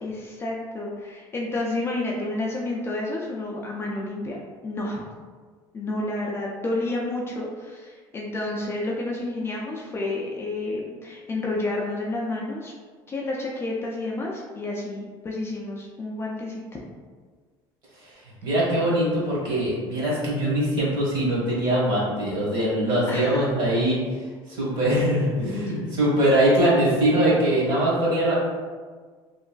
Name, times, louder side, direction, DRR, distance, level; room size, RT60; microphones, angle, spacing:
voice 1, 0.0-4.4 4.6-5.0 5.7-12.7 13.1-16.8 23.1-23.5 25.7-25.8, left 2 dB, 25° left, -2 dB, 0.3 m, -30 dB
voice 2, 18.4-24.0 24.5-28.4, right 1 dB, 45° right, -6 dB, 1.3 m, -22 dB
3.0 x 2.4 x 2.2 m, 1.5 s
cardioid pair, 130°, 11 cm